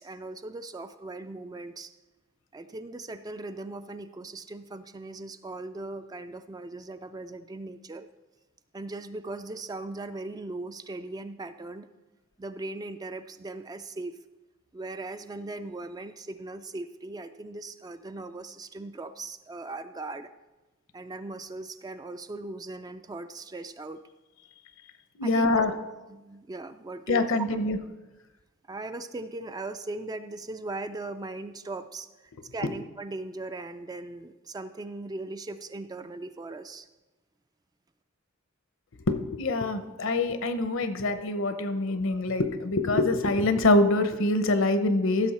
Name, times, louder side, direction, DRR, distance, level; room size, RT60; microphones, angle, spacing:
voice 1, 0.0-1.9 2.5-8.1 8.7-11.9 12.4-14.2 14.7-20.3 20.9-24.0 25.2-25.7 26.1-27.3 28.7-32.1 32.5-36.9, right 2 dB, 20° right, 10 dB, 0.3 m, -39 dB
voice 2, 25.2-25.7 27.1-27.8 39.1-45.3, left 2 dB, 65° left, 10 dB, 0.8 m, -25 dB
15.0 x 6.6 x 4.2 m, 1.1 s
head